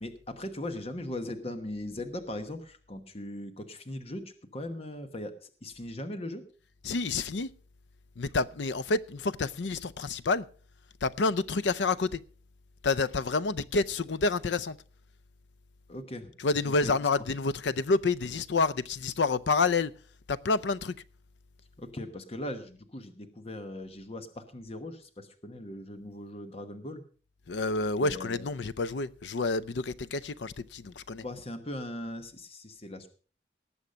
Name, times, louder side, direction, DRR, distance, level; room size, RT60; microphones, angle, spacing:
voice 1, 0.0-6.4 15.9-16.3 16.7-17.2 21.8-27.0 28.0-28.5 31.1-33.1, left 1 dB, 35° left, 1.1 m, -39 dB
voice 2, 6.8-7.5 8.2-10.5 11.0-12.2 12.8-14.8 16.4-19.9 20.3-21.0 27.5-31.2, left 3 dB, 80° left, 0.5 m, -28 dB
18.5 x 7.2 x 5.2 m
head